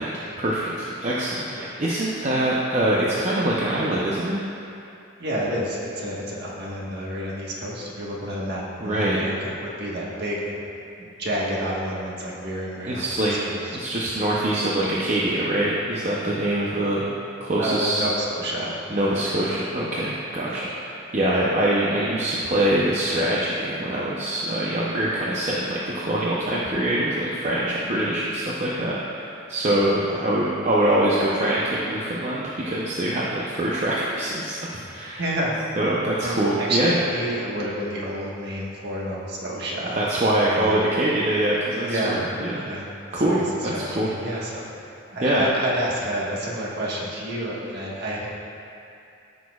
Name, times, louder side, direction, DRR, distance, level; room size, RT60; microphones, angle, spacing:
voice 1, 0.0-4.4 8.8-9.2 12.9-13.4 13.7-17.1 17.4-18.0 18.9-35.2 35.8-37.0 40.0-42.6 43.1-44.4 45.2-45.4, right 1 dB, 35° right, -6 dB, 0.6 m, -24 dB
voice 2, 5.2-10.4 11.0-13.6 17.6-18.8 20.5-20.6 30.0-30.2 35.2-35.5 36.2-40.0 40.5-40.8 41.8-42.2 42.6-44.7 45.1-48.3, equal, 50° right, -4 dB, 1.4 m, -29 dB
14.0 x 6.2 x 2.4 m, 2.6 s
head